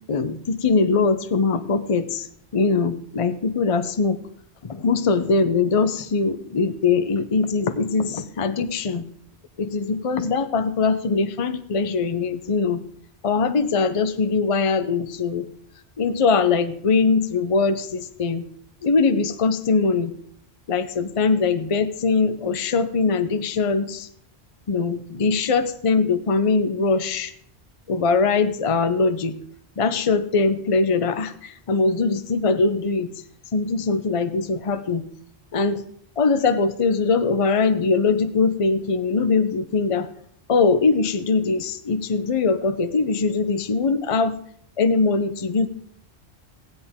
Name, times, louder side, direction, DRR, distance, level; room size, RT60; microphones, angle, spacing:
voice 1, 0.1-2.3 2.5-4.2 4.6-9.1 9.6-12.8 13.2-15.5 16.0-18.4 18.8-20.2 20.7-24.1 24.7-27.3 27.9-29.4 29.8-33.1 33.5-35.1 35.5-35.8 36.2-40.1 40.5-44.4 44.8-45.7, left 4 dB, 35° left, 10 dB, 0.7 m, -21 dB
15.5 x 10.5 x 3.6 m, 0.65 s
omnidirectional pair, 1.1 m